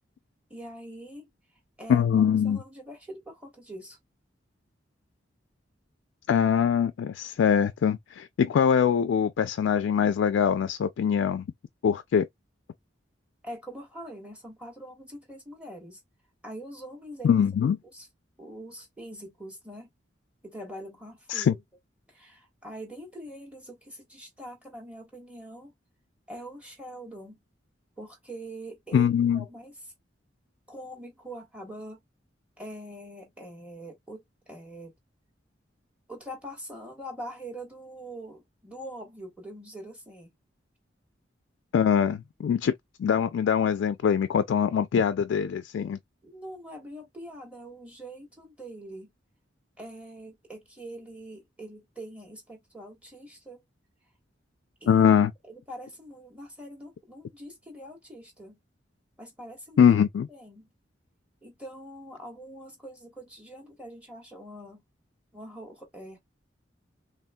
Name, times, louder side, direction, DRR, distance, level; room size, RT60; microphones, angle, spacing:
voice 1, 0.5-1.3 1.8-4.0 13.4-16.0 16.4-17.3 17.9-18.1 18.4-19.9 20.4-21.6 22.1-25.7 26.3-27.4 28.0-29.7 30.7-32.0 32.6-34.9 36.1-40.3 46.2-49.1 49.8-53.6 54.8-55.0 55.4-58.6 59.2-59.9 60.3-60.7 61.4-64.8 65.3-66.2, right 1 dB, 5° right, 1.3 m, -43 dB
voice 2, 1.9-2.6 6.3-11.4 11.8-12.3 17.2-17.8 21.3-21.5 28.9-29.4 41.7-42.7 43.0-46.0 54.9-55.3 59.8-60.3, left 7 dB, 85° left, 0.3 m, -23 dB
3.4 x 2.4 x 2.2 m
head